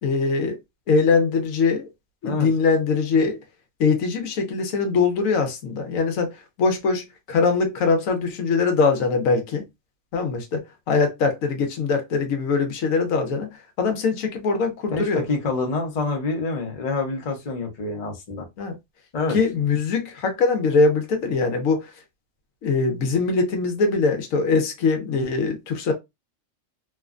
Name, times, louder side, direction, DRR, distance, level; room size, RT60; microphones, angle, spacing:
voice 1, 0.0-0.6 0.9-1.9 2.2-3.4 3.8-9.6 10.1-13.5 13.8-15.2 18.6-18.8 19.3-21.9 22.6-25.9, left 4 dB, 80° left, 1.1 m, -22 dB
voice 2, 14.9-18.5 19.1-19.4, left 3 dB, 35° left, 0.7 m, -27 dB
3.0 x 2.1 x 2.4 m
omnidirectional pair, 1.4 m